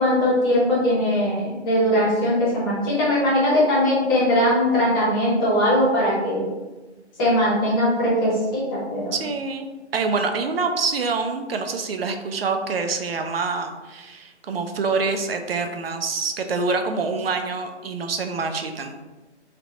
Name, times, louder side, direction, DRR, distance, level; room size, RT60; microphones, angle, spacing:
voice 1, 0.0-6.5 7.2-9.1, left 1 dB, 20° left, -6 dB, 1.0 m, -20 dB
voice 2, 9.1-18.9, right 4 dB, 60° right, 6 dB, 0.5 m, -26 dB
3.3 x 2.5 x 3.8 m, 1.2 s
hypercardioid pair, 155°, 35 cm